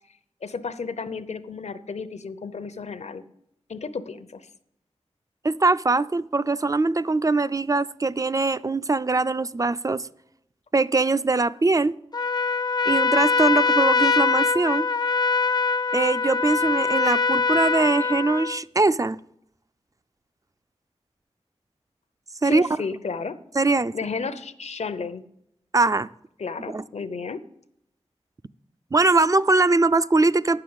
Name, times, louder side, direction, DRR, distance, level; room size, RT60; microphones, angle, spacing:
voice 1, 0.4-3.2 3.7-4.4 22.4-23.4 23.9-25.2 26.4-27.4, left 5 dB, 75° left, 0.7 m, -32 dB
voice 2, 5.4-10.1 10.7-11.9 12.9-14.9 15.9-19.2 22.4-22.7 23.6-23.9 25.7-26.1 26.6-26.8 28.9-30.6, right 3 dB, 30° right, 0.3 m, -22 dB
Trumpet, 12.1-18.6, left 4 dB, 35° left, 0.5 m, -23 dB
9.3 x 6.8 x 7.8 m
wide cardioid pair, 55°, 11 cm